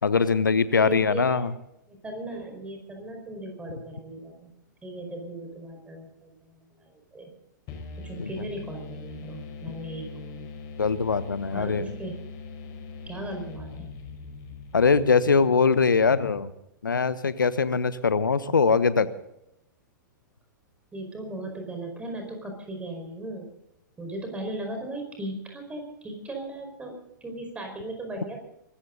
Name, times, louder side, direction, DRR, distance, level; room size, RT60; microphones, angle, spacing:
voice 1, 0.0-1.5 8.2-8.4 10.8-11.9 14.7-16.5 16.8-19.1, left 5 dB, 80° left, 15 dB, 1.2 m, -22 dB
voice 2, 0.8-1.5 1.9-4.5 4.8-7.3 8.0-10.5 11.5-12.1 13.1-13.9 20.9-23.5 24.0-28.4, right 1 dB, 10° right, 3 dB, 5.0 m, -37 dB
sound 1, 7.7-15.4, left 4 dB, 35° left, 5.4 m, -41 dB
23.5 x 14.5 x 4.0 m, 0.82 s
figure-of-eight pair, 105°, 10 cm